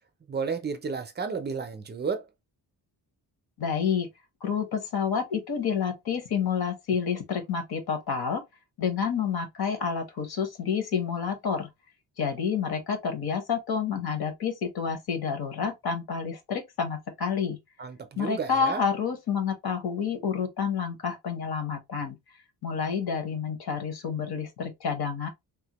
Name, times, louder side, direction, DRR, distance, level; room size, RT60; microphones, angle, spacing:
voice 1, 0.3-2.3 17.8-18.8, right 5 dB, 25° right, 0.5 m, -32 dB
voice 2, 3.6-4.1 4.4-8.4 8.8-11.7 12.2-17.6 18.2-22.2 22.6-25.3, left 6 dB, 60° left, 1.1 m, -29 dB
3.6 x 2.2 x 2.9 m
wide cardioid pair, 170°, 42 cm